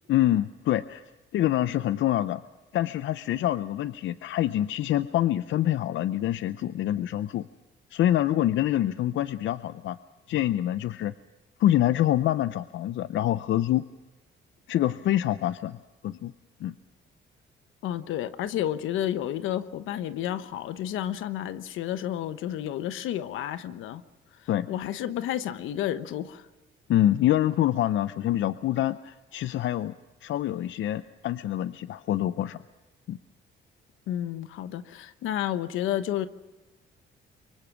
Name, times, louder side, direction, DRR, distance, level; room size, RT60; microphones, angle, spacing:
voice 1, 0.1-1.0 1.3-2.4 2.7-7.5 7.9-10.0 10.3-11.1 11.6-13.8 14.7-15.8 16.0-16.3 16.6-16.7 24.5-24.7 26.9-29.9 30.2-32.6 33.1-33.2, left 13 dB, 75° left, 14 dB, 0.6 m, -26 dB
voice 2, 17.8-24.0 24.7-26.4 34.1-36.3, left 11 dB, 90° left, 12 dB, 1.1 m, -31 dB
24.5 x 23.5 x 6.2 m, 1.1 s
cardioid pair, 90°, 20 cm